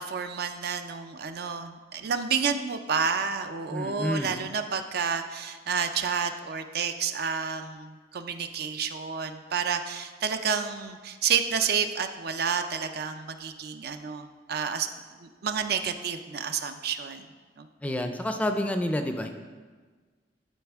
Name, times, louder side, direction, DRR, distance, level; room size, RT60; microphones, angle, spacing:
voice 1, 0.0-14.9 15.2-17.3 17.6-17.7, right 6 dB, 60° right, 8 dB, 0.4 m, -30 dB
voice 2, 3.7-4.3 17.8-19.3, left 1 dB, 10° left, 6 dB, 0.4 m, -29 dB
11.5 x 4.3 x 3.5 m, 1.4 s
head